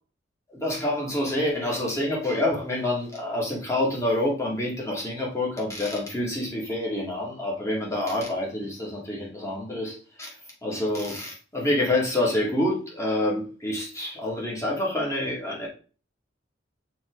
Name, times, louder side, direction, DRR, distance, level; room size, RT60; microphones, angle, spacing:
voice 1, 0.5-10.3 10.6-15.7, left 1 dB, 15° left, -3 dB, 2.2 m, -27 dB
6.1 x 3.8 x 4.7 m, 0.38 s
head